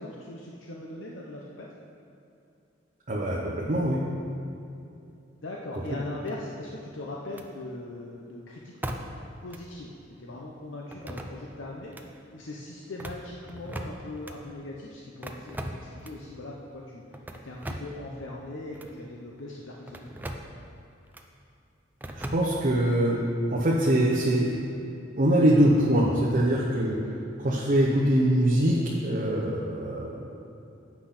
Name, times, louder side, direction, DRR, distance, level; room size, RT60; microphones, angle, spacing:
voice 1, 0.0-1.7 5.4-8.8 9.4-9.9 10.2-20.2, left 2 dB, 75° left, -2 dB, 0.8 m, -40 dB
voice 2, 3.1-4.0 5.7-5.8 22.1-23.2 23.5-24.6 25.2-27.0 27.4-30.4, right 1 dB, 45° right, -4 dB, 0.9 m, -23 dB
sound 1, 6.3-6.8 7.3-7.5 8.8-9.3 9.5-9.6 10.9-11.6 11.9-12.1 12.8-14.4 15.2-16.3 17.1-18.0 18.7-18.9 19.9-20.5 21.1-21.3 22.0-22.8, right 1 dB, 10° right, 0.5 m, -39 dB
8.5 x 6.0 x 5.8 m, 2.7 s
head